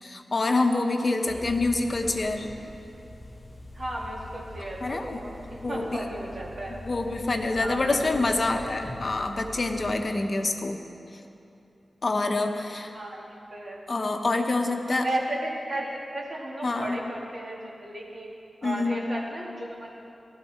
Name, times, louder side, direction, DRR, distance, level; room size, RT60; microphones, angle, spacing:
voice 1, 0.0-2.5 4.8-5.2 5.6-6.1 6.7-10.8 12.0-12.9 13.9-15.1 16.6-17.0 18.6-19.0, left 2 dB, 45° left, 4 dB, 0.9 m, -26 dB
sound 1, 1.3-10.0, left 1 dB, 20° left, 3.3 m, -43 dB
voice 2, 3.7-6.8 7.5-8.2 8.6-8.7 10.4-10.5 12.9-13.8 14.9-18.3 18.6-20.0, right 1 dB, 45° right, -3 dB, 2.4 m, -35 dB
17.0 x 13.0 x 4.4 m, 2.8 s
wide cardioid pair, 115°, 0 cm